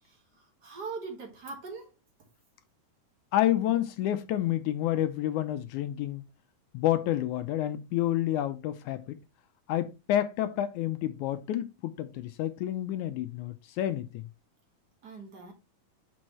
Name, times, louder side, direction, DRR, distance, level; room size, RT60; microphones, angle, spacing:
voice 1, 0.0-2.0 15.0-15.5, right 4 dB, 45° right, 1.3 m, -42 dB
voice 2, 3.3-6.2 6.7-9.2 9.7-14.2, left 12 dB, 80° left, 1.8 m, -29 dB
6.2 x 6.1 x 3.0 m
omnidirectional pair, 3.8 m